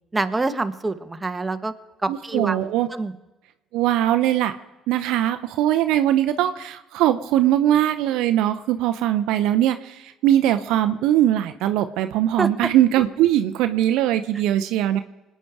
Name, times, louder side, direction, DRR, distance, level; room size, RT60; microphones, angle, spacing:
voice 1, 0.1-1.7 2.0-2.6 2.9-3.1 12.4-12.7, right 3 dB, 20° right, 9 dB, 1.2 m, -26 dB
voice 2, 2.1-2.9 3.7-4.5 4.9-15.0, right 12 dB, 70° right, 9 dB, 0.7 m, -21 dB
25.5 x 9.2 x 4.8 m, 1.1 s
hypercardioid pair, 55°, 0 cm